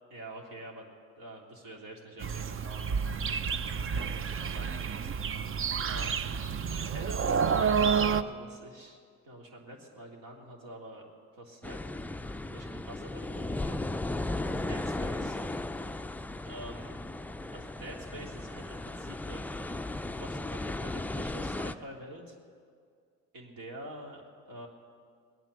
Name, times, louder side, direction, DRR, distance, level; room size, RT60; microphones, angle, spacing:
voice 1, 0.1-5.1 5.8-6.3 6.8-7.9 8.2-11.8 12.4-14.1 14.5-15.4 16.5-17.1 17.5-19.4 20.2-22.3 23.3-24.7, right 1 dB, 60° right, 0 dB, 3.2 m, -47 dB
sound 1, 2.2-8.2, right 6 dB, 35° right, 0.6 m, -29 dB
sound 2, 11.6-21.7, left 2 dB, 5° left, 0.4 m, -36 dB
20.5 x 9.2 x 6.9 m, 2.1 s
hypercardioid pair, 60°, 38 cm